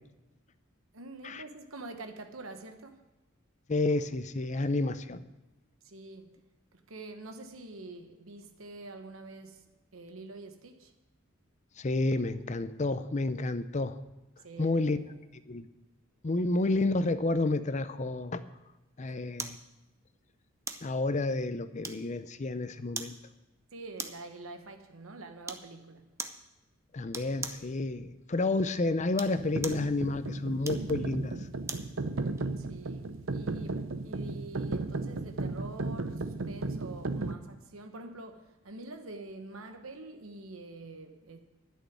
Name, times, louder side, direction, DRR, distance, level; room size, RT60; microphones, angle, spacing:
voice 1, 0.9-3.0 5.8-6.3 6.7-10.9 14.4-15.1 19.1-19.2 23.7-26.1 32.6-41.4, right 2 dB, 90° right, 1.1 m, -46 dB
voice 2, 3.7-5.2 11.8-14.0 14.6-15.0 15.5-15.7 16.2-18.4 19.0-19.6 20.8-23.2 26.9-31.3, left 2 dB, 35° left, 0.6 m, -30 dB
sound 1, 19.4-19.6 20.7-20.9 21.8-22.3 22.9-23.2 24.0-24.3 25.4-25.7 26.2-26.4 27.1-27.7 29.0-29.9 30.6-31.9 32.4-32.5, right 4 dB, 15° right, 0.6 m, -40 dB
sound 2, 29.4-37.3, right 3 dB, 70° right, 0.7 m, -35 dB
11.5 x 6.5 x 9.3 m
head